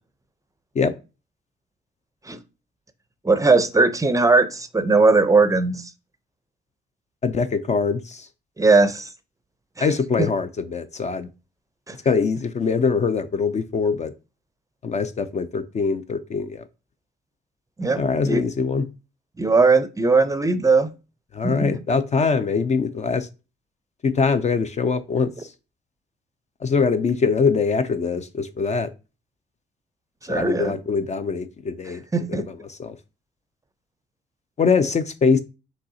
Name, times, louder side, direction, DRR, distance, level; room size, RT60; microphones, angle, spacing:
voice 1, 3.2-5.9 8.6-9.1 9.8-9.9 10.2-10.3 11.9-12.0 17.8-18.4 19.4-20.9 21.4-21.8 30.2-30.8 32.1-32.4, right 3 dB, 15° right, 0.5 m, -19 dB
voice 2, 7.2-8.3 9.8-11.3 12.1-14.1 14.8-16.6 17.9-18.9 21.3-23.3 24.0-25.5 26.6-28.9 30.3-32.0 32.3-33.0 34.6-35.4, left 5 dB, 35° left, 0.4 m, -23 dB
5.3 x 3.1 x 2.7 m
cardioid pair, 90°, 20 cm